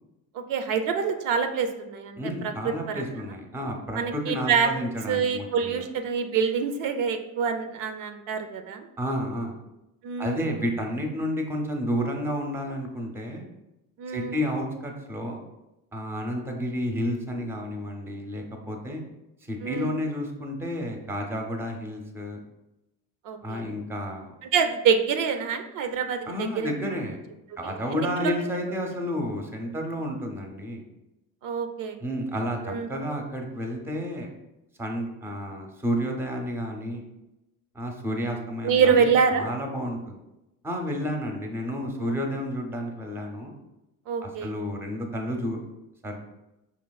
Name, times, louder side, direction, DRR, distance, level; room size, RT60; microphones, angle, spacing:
voice 1, 0.3-2.2 2.9-3.0 3.9-4.7 5.1-8.9 10.0-10.4 14.0-14.4 19.6-20.0 23.2-23.6 24.4-26.7 27.6-28.4 31.4-32.0 32.7-32.9 38.6-39.5 42.0-42.1 44.1-44.5, right 6 dB, 70° right, 7 dB, 0.5 m, -26 dB
voice 2, 2.2-5.8 9.0-9.6 10.2-13.5 14.1-15.4 15.9-19.0 19.4-22.4 23.4-24.3 26.3-27.2 27.6-30.8 32.0-34.3 34.8-37.0 37.7-40.2 40.6-43.5 44.2-45.6 46.0-46.3, equal, 5° right, 2 dB, 0.6 m, -31 dB
5.1 x 2.9 x 2.3 m, 0.95 s
cardioid pair, 110°, 34 cm